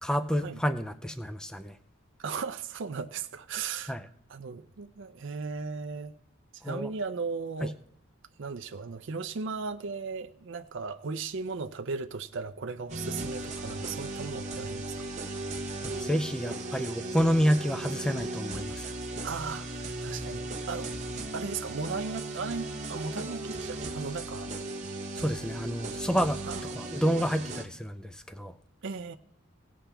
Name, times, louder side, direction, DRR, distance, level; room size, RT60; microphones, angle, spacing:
voice 1, 0.0-1.8 3.9-4.1 6.6-6.9 7.6-7.7 15.8-18.9 25.1-26.4 26.7-28.5, equal, 5° left, 0.3 m, -29 dB
voice 2, 2.2-4.0 4.3-6.1 6.5-7.7 8.4-15.1 19.2-20.9 21.3-24.5 26.5-26.6 28.8-29.1, right 4 dB, 55° right, 0.5 m, -36 dB
sound 1, 12.9-27.6, right 2 dB, 30° right, 1.0 m, -37 dB
17.0 x 7.3 x 3.4 m
head